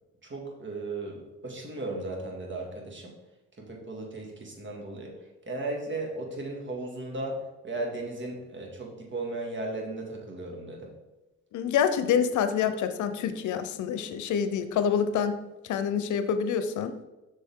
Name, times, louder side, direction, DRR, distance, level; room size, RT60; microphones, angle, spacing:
voice 1, 0.2-3.1 3.6-5.2 5.5-10.9, right 2 dB, 40° right, 0 dB, 2.2 m, -36 dB
voice 2, 11.5-17.0, left 7 dB, 75° left, 11 dB, 0.7 m, -27 dB
7.4 x 6.2 x 3.7 m, 1.0 s
cardioid pair, 90°, 30 cm